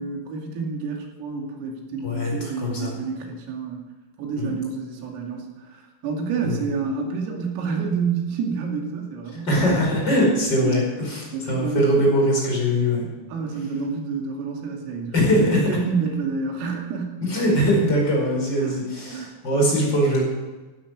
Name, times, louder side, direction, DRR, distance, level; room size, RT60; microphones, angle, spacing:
voice 1, 0.0-3.8 4.2-9.9 10.6-11.0 11.3-11.9 13.3-17.2 18.6-18.8 19.1-19.3, right 5 dB, 80° right, 1 dB, 5.1 m, -29 dB
voice 2, 2.0-2.9 4.4-4.5 6.4-6.7 9.3-13.1 15.1-15.7 17.2-20.2, equal, 20° left, -1 dB, 4.9 m, -21 dB
16.5 x 12.0 x 6.2 m, 1.2 s
omnidirectional pair, 5.9 m